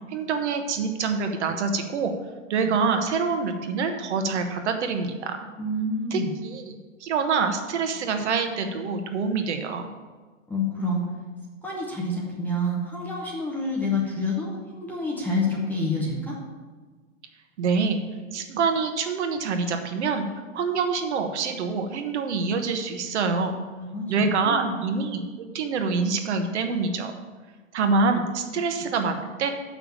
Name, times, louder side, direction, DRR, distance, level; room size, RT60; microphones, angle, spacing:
voice 1, 0.1-2.1 2.5-5.5 6.1-6.7 7.0-9.9 17.6-18.0 18.3-20.3 20.5-23.6 24.1-27.1 27.7-29.5, right 4 dB, 60° right, 6 dB, 1.3 m, -26 dB
voice 2, 5.6-6.3 10.5-11.0 11.6-16.4 23.8-24.0 24.4-24.8, left 2 dB, 5° left, -4 dB, 0.7 m, -28 dB
7.2 x 5.8 x 7.2 m, 1.4 s
hypercardioid pair, 160°, 39 cm